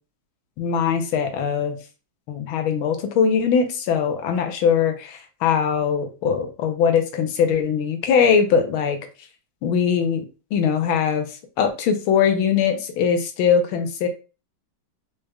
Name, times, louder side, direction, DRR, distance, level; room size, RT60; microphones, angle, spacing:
voice 1, 0.6-1.8 2.3-9.0 9.6-10.2 10.5-11.3 11.6-14.1, left 7 dB, 75° left, 6 dB, 1.4 m, -21 dB
4.8 x 3.2 x 2.2 m, 0.34 s
omnidirectional pair, 2.3 m